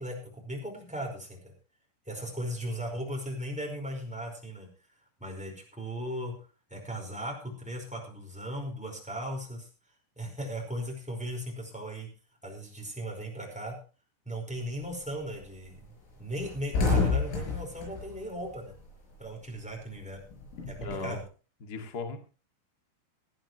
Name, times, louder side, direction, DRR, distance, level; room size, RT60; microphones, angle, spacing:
voice 1, 0.0-1.5 2.0-4.7 5.2-6.3 6.7-9.7 10.2-12.1 12.4-13.8 14.2-15.9 16.2-18.7 19.2-20.2 20.7-21.2, equal, ahead, 0 dB, 4.3 m, -37 dB
sound 1, 14.6-15.0 15.4-15.5 15.8-15.9 16.2-19.2 19.5-21.2, left 4 dB, 90° left, 8.4 m, -30 dB
voice 2, 20.8-21.2 21.6-22.2, left 4 dB, 45° left, 5 dB, 1.2 m, -36 dB
18.0 x 14.0 x 3.2 m, 0.35 s
omnidirectional pair, 5.6 m